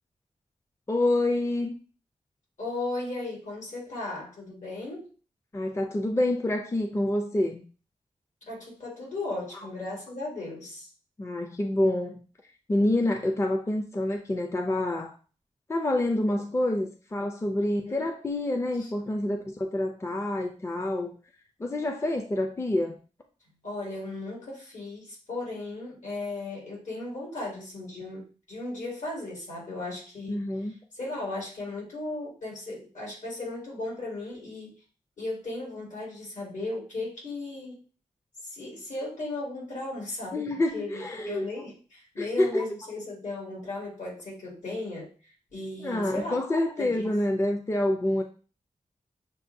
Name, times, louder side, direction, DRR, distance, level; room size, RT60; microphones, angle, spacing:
voice 1, 0.9-1.7 5.5-7.6 11.2-12.2 12.7-15.2 15.7-21.2 21.6-23.0 30.3-30.8 40.3-41.5 42.2-42.6 45.8-48.2, left 1 dB, 20° left, 0.4 m, -27 dB
voice 2, 2.6-5.1 8.5-10.9 17.6-18.1 18.8-18.9 23.6-30.4 30.9-34.7 35.2-37.8 38.4-45.1 45.5-46.4 46.8-47.1, left 2 dB, 75° left, 2.3 m, -36 dB
6.6 x 2.2 x 2.6 m
wide cardioid pair, 110°, 13 cm